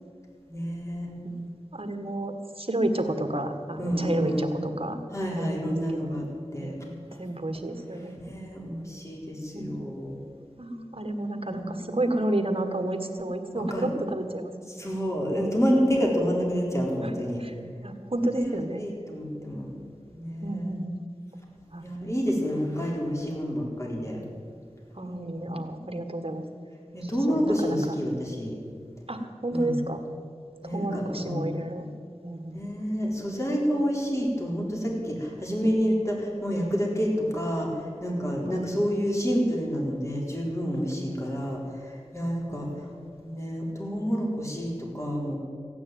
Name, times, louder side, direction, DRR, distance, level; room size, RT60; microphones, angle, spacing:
voice 1, 0.5-1.1 3.8-4.5 5.1-6.3 6.5-6.8 8.2-10.2 11.5-11.7 13.5-13.9 14.8-17.4 18.3-19.7 20.1-20.7 21.8-24.2 25.0-25.5 26.9-28.6 29.5-29.7 30.6-31.4 32.5-42.9 43.2-45.4, equal, 25° left, -2 dB, 4.0 m, -28 dB
voice 2, 1.2-5.0 5.3-6.2 6.6-6.8 7.1-8.2 9.5-9.8 10.6-14.5 17.0-17.1 17.4-17.5 17.8-18.8 20.4-21.0 21.7-21.9 24.9-26.4 27.0-28.0 29.1-30.0 30.6-31.9 32.2-32.5 38.5-38.7 42.5-42.9, right 1 dB, 50° right, 6 dB, 1.6 m, -31 dB
15.0 x 9.5 x 9.2 m, 2.1 s
wide cardioid pair, 40°, 12 cm